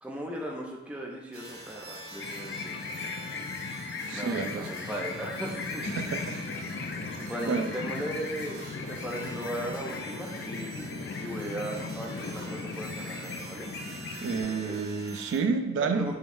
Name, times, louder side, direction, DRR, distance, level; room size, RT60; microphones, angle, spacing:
voice 1, 0.0-2.7 4.1-5.8 7.2-13.7 14.4-14.8 15.9-16.2, right 1 dB, 5° right, -2 dB, 0.5 m, -37 dB
sound 1, 1.3-15.4, right 1 dB, 60° right, 1.0 m, -45 dB
sound 2, 2.2-14.4, left 4 dB, 65° left, 0.4 m, -37 dB
voice 2, 4.1-4.7 5.9-6.4 6.8-7.7 14.2-16.1, right 4 dB, 80° right, 6 dB, 0.3 m, -30 dB
4.8 x 3.1 x 2.6 m, 1.0 s
head